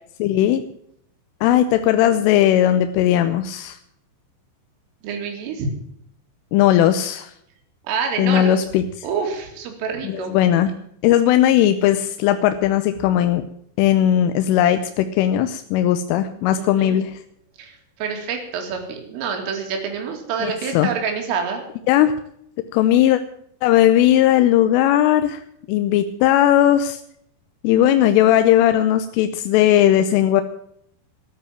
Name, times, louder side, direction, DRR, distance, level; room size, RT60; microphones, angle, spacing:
voice 1, 0.2-0.6 1.4-3.8 6.5-7.3 8.2-8.8 10.0-10.7 11.0-13.4 13.8-17.2 20.4-20.9 21.9-22.1 22.7-23.2 23.6-25.4 25.7-27.0 27.6-30.4, left 11 dB, 90° left, 9 dB, 3.3 m, -17 dB
voice 2, 5.0-5.7 7.8-8.7 9.0-10.4 16.5-17.0 17.6-21.6, right 6 dB, 85° right, 3 dB, 4.9 m, -27 dB
14.0 x 11.0 x 7.4 m, 0.71 s
omnidirectional pair, 5.6 m